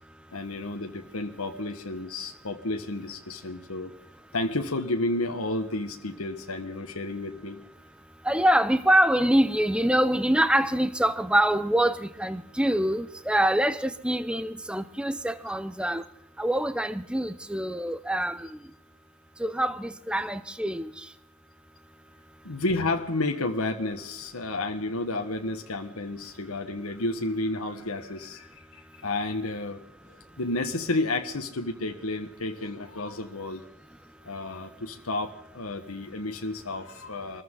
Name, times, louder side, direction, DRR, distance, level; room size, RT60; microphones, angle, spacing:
voice 1, 0.3-3.9 4.3-7.6 22.4-29.8 30.4-33.6 34.2-37.4, left 2 dB, 80° left, 1.4 m, -31 dB
voice 2, 8.3-16.0 16.4-18.5 19.4-20.9, right 1 dB, 5° right, 0.5 m, -25 dB
25.0 x 14.5 x 3.8 m
head